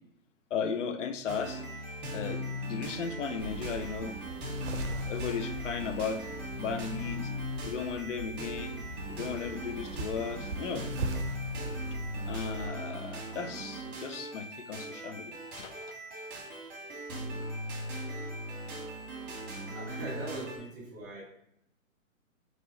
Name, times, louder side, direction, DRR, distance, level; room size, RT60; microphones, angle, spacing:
voice 1, 0.5-1.6 2.1-4.2 5.1-6.2 6.6-7.3 7.6-8.8 9.1-10.9 12.3-16.3 17.3-17.4, left 6 dB, 65° left, 8 dB, 0.6 m, -36 dB
sound 1, 1.3-20.6, equal, 40° right, 1.3 m, -39 dB
sound 2, 3.4-12.7, right 2 dB, 65° right, 0.6 m, -41 dB
voice 2, 19.7-21.2, right 2 dB, 15° right, -5 dB, 0.4 m, -40 dB
3.0 x 2.7 x 4.1 m, 0.76 s
hypercardioid pair, 135°, 40 cm